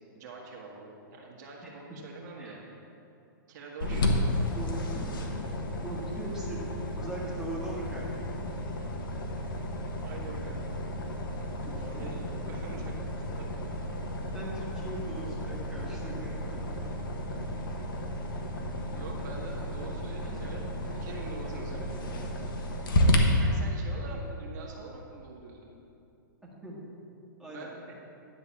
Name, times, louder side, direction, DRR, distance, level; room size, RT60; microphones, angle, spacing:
voice 1, 0.2-2.6 3.5-4.1 9.6-9.7 10.0-10.8 11.8-13.0 13.4-13.5 18.9-20.6 20.9-22.4 23.4-25.7 27.5-27.9, right 3 dB, 55° right, -2 dB, 1.7 m, -44 dB
voice 2, 1.6-2.0 2.4-2.6 3.8-4.0 4.5-5.0 5.8-6.6 6.9-8.3 11.8-12.1 14.3-16.9 20.2-20.6 23.1-23.2 24.1-24.2 26.4-26.8 27.4-27.9, right 1 dB, 5° right, -5 dB, 1.7 m, -41 dB
sound 1, 3.8-23.2, left 1 dB, 75° left, 1.3 m, -33 dB
10.5 x 4.0 x 7.1 m, 2.8 s
hypercardioid pair, 145°, 11 cm